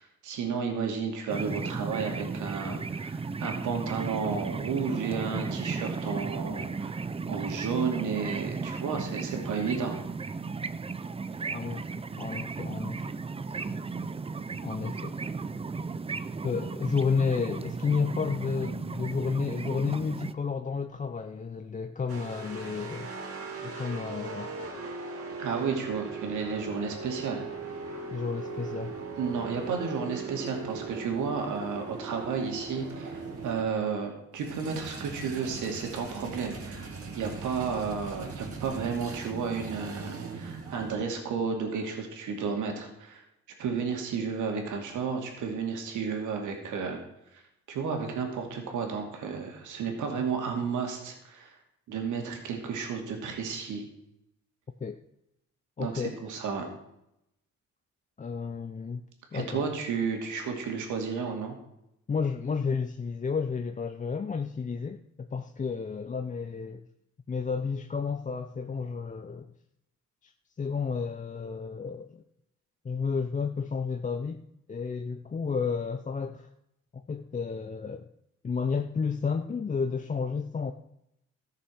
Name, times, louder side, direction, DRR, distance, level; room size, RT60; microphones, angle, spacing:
voice 1, 0.0-7.0 7.3-10.0 25.4-27.5 29.2-43.2 43.6-47.0 47.3-47.4 47.7-51.5 51.9-53.8 55.8-56.7 59.3-61.6, right 5 dB, 80° right, 3 dB, 2.6 m, -32 dB
sound 1, 1.3-20.3, right 4 dB, 20° right, 0.5 m, -35 dB
voice 2, 11.5-11.8 12.2-13.1 14.6-15.2 16.4-23.1 23.6-24.5 28.1-28.9 54.8-55.0 55.8-56.1 58.2-59.0 59.3-59.7 62.1-66.8 67.3-69.5 70.2-70.3 70.6-72.2 72.8-74.4 74.7-76.5 76.9-78.1 78.4-80.7, left 5 dB, 25° left, 7 dB, 0.6 m, -31 dB
sound 2, 22.1-33.6 34.3-41.0, right 4 dB, 50° right, 2.5 m, -39 dB
14.0 x 6.7 x 6.3 m, 0.82 s
cardioid pair, 90°, 30 cm